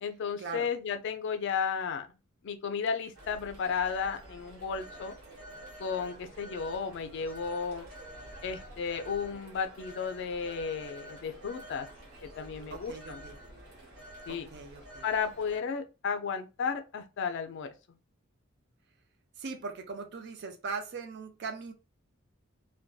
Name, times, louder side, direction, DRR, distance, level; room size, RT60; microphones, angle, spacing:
voice 1, 0.0-2.1 2.4-5.1 5.8-7.9 8.4-11.9 12.2-13.2 14.3-14.5 15.0-17.7, left 6 dB, 60° left, 0.4 m, -33 dB
Telephone, 3.1-15.6, right 1 dB, 75° right, 1.0 m, -48 dB
voice 2, 12.7-13.4 14.3-15.1 19.4-21.7, right 4 dB, 55° right, 0.5 m, -40 dB
2.6 x 2.2 x 2.3 m
head